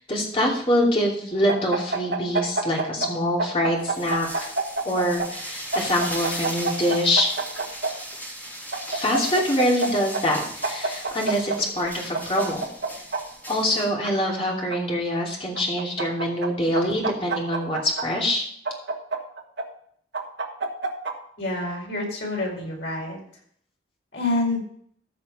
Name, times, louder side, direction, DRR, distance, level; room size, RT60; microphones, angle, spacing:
voice 1, 0.0-4.5 4.8-7.3 8.9-12.7 13.5-18.4, equal, 30° left, -2 dB, 2.8 m, -24 dB
sound 1, 1.5-3.1 3.4-5.3 5.7-7.9 8.7-9.9 10.1-10.2 10.6-11.6 12.1-13.2 13.8-14.8 15.6-16.5 16.7-18.0 18.7-19.6 20.1-21.1, right 3 dB, 70° right, 1.4 m, -26 dB
sound 2, 3.8-13.9, equal, 10° left, 3.1 m, -37 dB
voice 2, 21.4-23.2 24.1-24.6, left 2 dB, 85° left, -1 dB, 4.4 m, -27 dB
14.0 x 5.6 x 4.9 m, 0.64 s
head